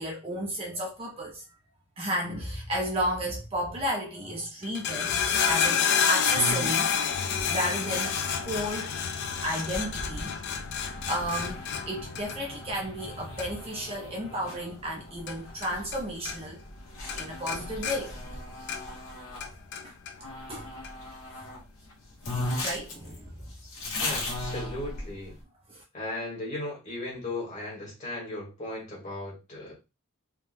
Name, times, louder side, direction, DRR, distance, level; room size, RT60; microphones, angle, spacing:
voice 1, 0.0-1.4 2.0-5.2 5.5-7.1 7.5-8.9 9.4-10.3 10.8-16.6 17.2-18.2 19.8-19.9 20.5-20.7 22.6-23.4 25.7-25.8, equal, 25° right, 0.6 m, -33 dB
sound 1, 4.6-16.8 17.1-19.0 19.4-20.1 20.8-20.9, left 7 dB, 50° left, 0.3 m, -30 dB
sound 2, 6.3-19.5 20.2-21.6 21.9-22.0 22.2-25.3, left 1 dB, 65° left, 1.2 m, -38 dB
voice 2, 24.0-25.3 25.9-29.7, left 2 dB, 35° left, 1.4 m, -36 dB
3.6 x 2.3 x 2.6 m
head